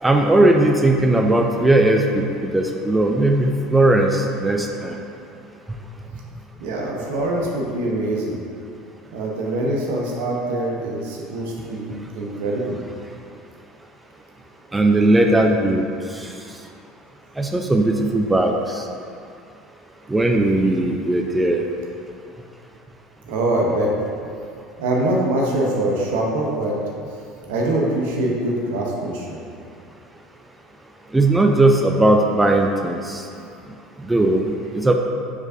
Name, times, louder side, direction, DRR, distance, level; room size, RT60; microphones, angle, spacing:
voice 1, 0.0-5.0 14.7-15.8 17.4-18.8 20.1-21.6 31.1-33.2 34.0-34.9, right 2 dB, 10° right, 2 dB, 0.3 m, -18 dB
voice 2, 6.6-8.3 9.1-12.8 23.3-23.9 24.8-26.8 27.5-29.4, right 1 dB, 75° right, -2 dB, 0.8 m, -23 dB
4.7 x 4.2 x 2.6 m, 2.4 s
hypercardioid pair, 85°, 0 cm